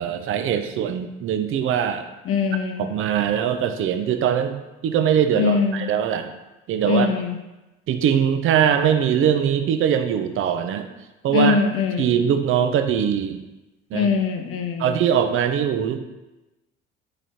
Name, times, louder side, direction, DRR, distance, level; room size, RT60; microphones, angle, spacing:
voice 1, 0.0-2.1 2.8-4.6 4.8-6.4 6.7-7.1 7.9-10.9 11.2-11.6 12.0-13.4 13.9-14.1 14.8-16.0, right 8 dB, 35° right, 7 dB, 0.5 m, -21 dB
voice 2, 2.3-2.9 5.3-5.8 6.9-7.3 11.3-12.1 13.9-15.0, left 5 dB, 40° left, 5 dB, 0.7 m, -22 dB
4.8 x 3.8 x 2.8 m, 1.0 s
figure-of-eight pair, 55°, 36 cm